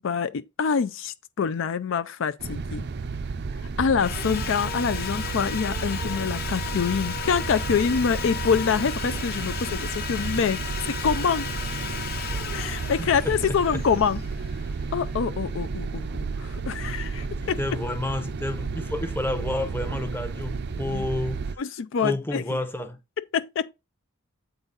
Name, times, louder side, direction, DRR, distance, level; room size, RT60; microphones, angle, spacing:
voice 1, 0.0-2.9 3.8-11.5 12.5-14.2 14.9-17.6 20.8-21.1 21.6-22.6 23.3-23.7, left 6 dB, 65° left, 0.4 m, -26 dB
sound 1, 2.4-21.6, right 4 dB, 50° right, 0.4 m, -32 dB
Sawing, 4.0-15.0, left 7 dB, 45° left, 1.1 m, -35 dB
voice 2, 13.0-13.8 17.4-21.6 22.0-23.0, left 1 dB, 10° left, 0.7 m, -30 dB
8.0 x 3.9 x 4.0 m
head